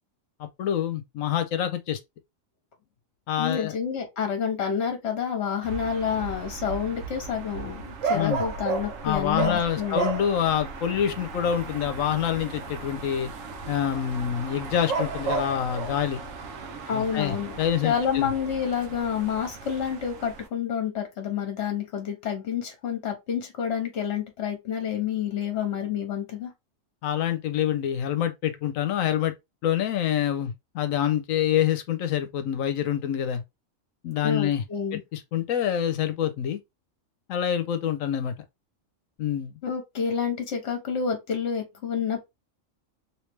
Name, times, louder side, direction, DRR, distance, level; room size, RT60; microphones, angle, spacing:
voice 1, 0.4-2.0 3.3-3.7 8.1-8.4 9.0-13.3 13.7-16.2 16.9-18.3 27.0-29.3 29.6-33.4 34.0-34.6 35.1-36.6 37.3-38.3 39.2-39.5, left 10 dB, 80° left, 1.0 m, -26 dB
voice 2, 3.4-10.1 16.9-17.5 17.8-26.5 34.2-35.0 39.6-42.3, left 7 dB, 60° left, 1.1 m, -29 dB
sound 1, 5.6-20.5, right 5 dB, 75° right, 1.1 m, -34 dB
3.2 x 3.0 x 3.2 m
omnidirectional pair, 1.4 m